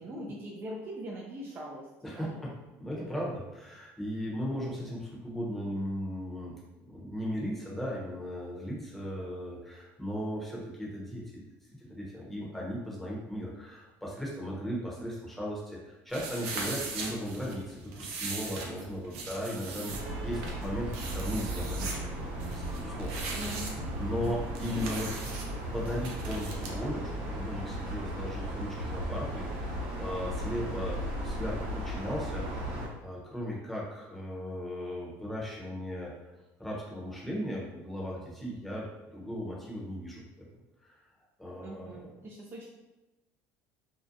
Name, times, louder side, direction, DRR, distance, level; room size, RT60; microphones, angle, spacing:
voice 1, 0.0-2.4 23.3-24.8 41.6-42.7, equal, 30° right, -3 dB, 0.4 m, -42 dB
voice 2, 2.0-2.5 2.8-6.5 6.9-11.4 11.8-23.2 24.0-25.1 25.7-36.3 36.6-40.5 40.8-41.0 41.4-42.1, equal, 5° left, -5 dB, 0.8 m, -37 dB
sound 1, 16.1-26.7, right 3 dB, 85° right, 0.5 m, -40 dB
sound 2, 19.9-32.9, right 1 dB, 70° right, 0.8 m, -36 dB
2.6 x 2.1 x 2.5 m, 1.1 s
supercardioid pair, 105°, 7 cm